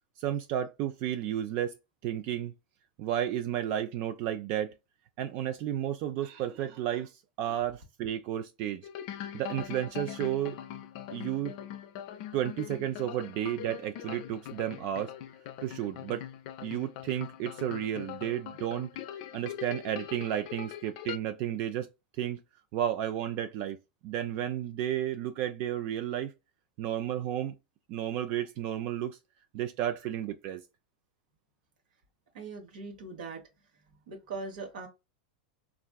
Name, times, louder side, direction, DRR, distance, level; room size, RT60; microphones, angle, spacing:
voice 1, 0.2-1.8 2.0-2.5 3.0-4.7 5.2-8.9 9.3-10.6 11.1-11.5 12.3-15.1 15.6-16.3 16.6-18.9 19.3-21.9 22.2-22.4 22.7-23.8 24.0-26.3 26.8-27.5 27.9-29.2 29.5-30.6, right 11 dB, 50° right, 0.4 m, -32 dB
sound 1, 8.8-21.2, left 10 dB, 60° left, 0.4 m, -42 dB
voice 2, 32.3-33.4 33.9-34.9, right 4 dB, 75° right, 1.1 m, -41 dB
3.4 x 2.4 x 2.3 m
hypercardioid pair, 110°, 4 cm